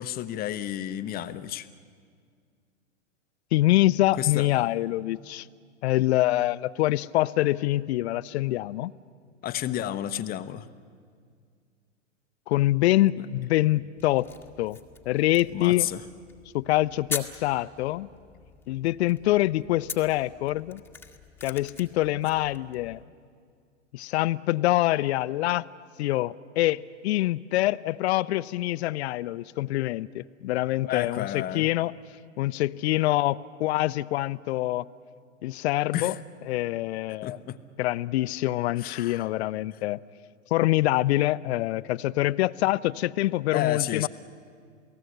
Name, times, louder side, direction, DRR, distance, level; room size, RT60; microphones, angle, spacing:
voice 1, 0.0-1.7 4.2-4.5 9.4-10.7 15.5-16.0 30.8-31.7 35.9-36.2 37.2-37.6 38.8-39.3 43.5-44.1, left 12 dB, 25° left, 11 dB, 0.8 m, -31 dB
voice 2, 3.5-5.5 5.8-8.9 12.5-14.3 14.6-14.8 15.1-15.9 16.5-18.1 18.7-20.8 21.4-23.0 23.9-25.7 26.0-31.9 32.4-34.8 35.4-36.1 36.5-37.4 37.8-40.0 40.5-44.1, left 16 dB, 55° left, 16 dB, 0.7 m, -25 dB
sound 1, 14.0-23.0, left 5 dB, 5° left, 1.5 m, -43 dB
29.0 x 18.0 x 8.0 m, 2.1 s
hypercardioid pair, 115°, 39 cm